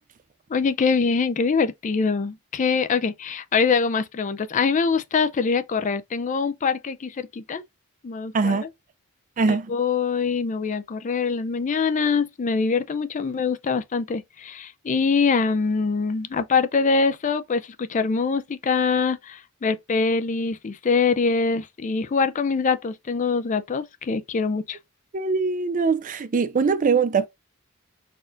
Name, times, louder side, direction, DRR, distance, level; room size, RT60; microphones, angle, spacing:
voice 1, 0.5-7.6 8.0-8.6 9.5-24.8, left 5 dB, 35° left, 0.4 m, -24 dB
voice 2, 8.3-8.6 9.4-9.7 25.1-27.3, right 4 dB, 35° right, 0.4 m, -22 dB
4.2 x 2.4 x 3.8 m
head